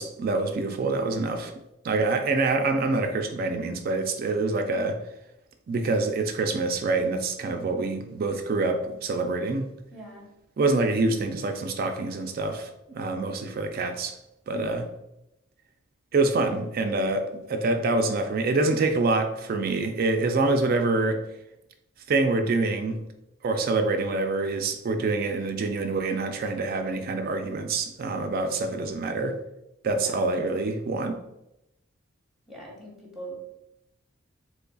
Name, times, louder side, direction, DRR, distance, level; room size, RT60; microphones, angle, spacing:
voice 1, 0.0-1.5 1.8-5.0 5.7-9.7 10.6-14.1 14.5-14.8 16.1-21.2 22.1-23.0 23.4-29.4 29.8-31.2, right 3 dB, 45° right, 6 dB, 0.3 m, -26 dB
voice 2, 9.9-10.3 14.5-14.7 30.0-30.3 32.5-33.4, right 1 dB, ahead, -2 dB, 0.7 m, -41 dB
3.8 x 3.1 x 2.2 m, 0.86 s
head